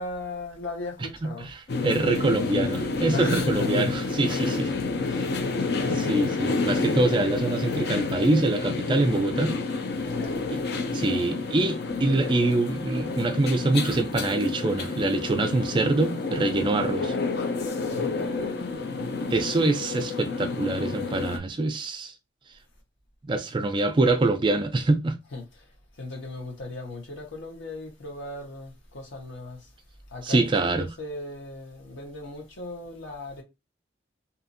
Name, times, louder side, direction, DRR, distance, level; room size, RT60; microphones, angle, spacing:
voice 1, 0.0-1.5 3.1-3.7 4.4-4.7 10.0-10.4 17.8-19.3 25.2-25.6 26.0-29.7 30.1-33.4, left 2 dB, 80° left, 1.1 m, -37 dB
sound 1, 1.7-21.4, left 4 dB, 55° left, 0.5 m, -29 dB
voice 2, 1.8-4.7 5.1-5.2 5.9-9.5 10.9-17.1 19.3-22.1 23.2-25.2 30.2-30.9, right 2 dB, 25° right, 0.3 m, -25 dB
2.7 x 2.5 x 2.5 m
head